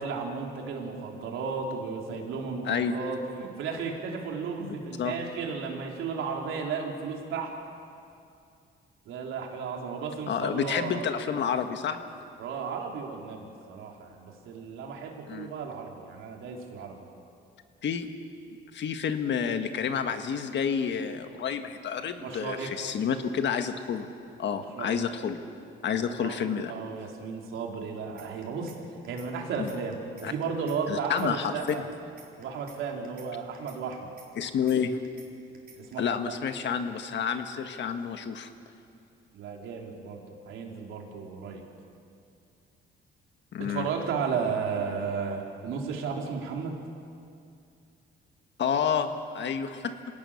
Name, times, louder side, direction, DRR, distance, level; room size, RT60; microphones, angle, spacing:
voice 1, 0.0-7.5 9.0-11.1 12.4-17.1 22.2-22.9 24.7-25.0 26.2-28.7 29.1-31.8 32.4-34.1 35.8-36.3 39.3-41.6 43.6-46.8, right 5 dB, 85° right, 1 dB, 3.4 m, -34 dB
voice 2, 2.6-3.0 4.6-5.1 10.3-12.0 15.3-15.5 17.8-18.1 18.7-24.1 24.4-25.4 25.8-26.7 30.2-30.3 30.9-31.7 34.4-34.9 36.0-38.5 43.5-43.9 48.6-49.9, left 7 dB, 65° left, 7 dB, 1.7 m, -29 dB
sound 1, 28.2-28.8 29.0-29.3 29.5-30.8 31.0-31.3 31.5-32.8 33.0-33.3 33.5-34.8 35.0-35.3 35.5-35.9, right 5 dB, 45° right, 4.6 m, -52 dB
26.0 x 18.0 x 7.3 m, 2.5 s
cardioid pair, 90°, 20 cm